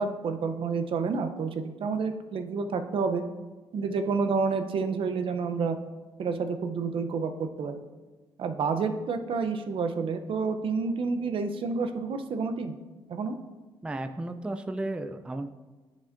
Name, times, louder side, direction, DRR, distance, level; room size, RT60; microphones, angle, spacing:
voice 1, 0.0-3.2 3.7-5.8 6.2-7.8 8.4-12.8 13.1-13.4, right 4 dB, 60° right, 8 dB, 0.6 m, -29 dB
voice 2, 13.8-15.5, right 2 dB, 10° right, 9 dB, 0.4 m, -34 dB
10.0 x 5.2 x 2.5 m, 1.2 s
cardioid pair, 75°, 11 cm